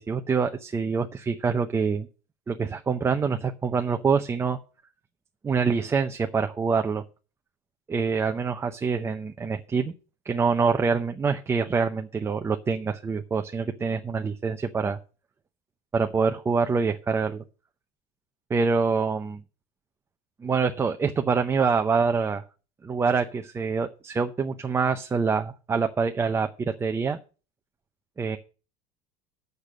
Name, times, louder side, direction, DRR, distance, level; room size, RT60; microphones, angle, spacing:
voice 1, 0.0-2.1 2.5-4.6 5.4-7.0 7.9-9.9 10.3-15.0 15.9-17.4 18.5-19.4 20.4-22.4 22.8-27.2 28.2-28.4, right 5 dB, 15° right, 6 dB, 0.7 m, -25 dB
8.0 x 6.8 x 7.3 m, 0.34 s
supercardioid pair, 145°, 18 cm